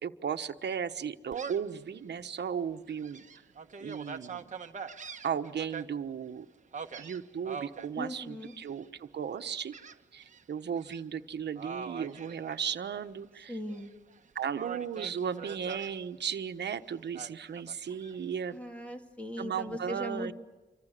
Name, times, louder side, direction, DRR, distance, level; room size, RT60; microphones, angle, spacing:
voice 1, 0.0-3.2 3.8-4.5 5.2-6.4 7.0-9.7 10.1-13.6 14.3-18.6 19.4-20.3, right 7 dB, 65° right, 8 dB, 1.3 m, -35 dB
Gull seagull, 1.3-1.7 2.3-2.4 2.9-5.8 6.7-7.9 8.4-8.9 9.7-10.4 10.8-11.0 11.6-13.1 13.4-14.2 14.5-15.9 17.1-18.2, right 6 dB, 40° right, 1.3 m, -43 dB
voice 2, 8.0-8.5 13.5-13.9 18.5-20.3, equal, 5° left, 4 dB, 2.5 m, -39 dB
28.0 x 25.0 x 6.8 m, 1.2 s
wide cardioid pair, 170°, 19 cm